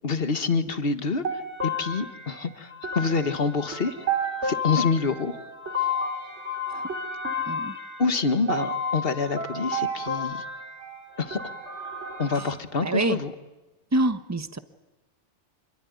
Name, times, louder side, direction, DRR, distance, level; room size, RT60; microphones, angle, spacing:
voice 1, 0.0-1.2 1.6-2.7 2.9-4.0 4.4-5.4 8.0-10.4 11.2-11.4 12.2-13.3, left 4 dB, 55° left, 11 dB, 1.7 m, -26 dB
sound 1, 1.2-12.5, left 1 dB, 65° right, 3.6 m, -31 dB
voice 2, 12.8-13.2 13.9-14.6, right 2 dB, 15° right, 11 dB, 1.0 m, -26 dB
27.0 x 22.5 x 9.5 m, 1.1 s
omnidirectional pair, 1.2 m